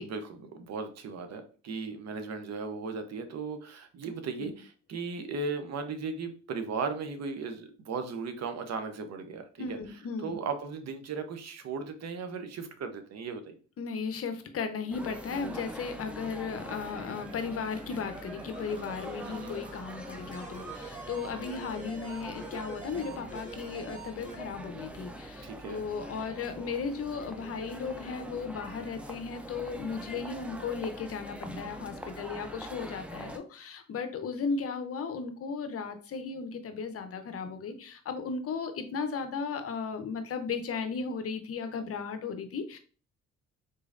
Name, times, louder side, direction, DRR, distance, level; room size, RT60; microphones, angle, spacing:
voice 1, 0.0-9.8 10.2-13.5 19.2-19.7 25.4-25.9, right 4 dB, 60° right, 8 dB, 0.7 m, -37 dB
voice 2, 9.6-10.4 13.8-42.8, left 5 dB, 50° left, 8 dB, 0.6 m, -36 dB
sound 1, 14.9-33.4, right 1 dB, 5° right, 0.5 m, -43 dB
sound 2, 16.7-24.4, right 4 dB, 25° right, 0.9 m, -48 dB
3.9 x 3.0 x 2.5 m, 0.38 s
cardioid pair, 90°, 30 cm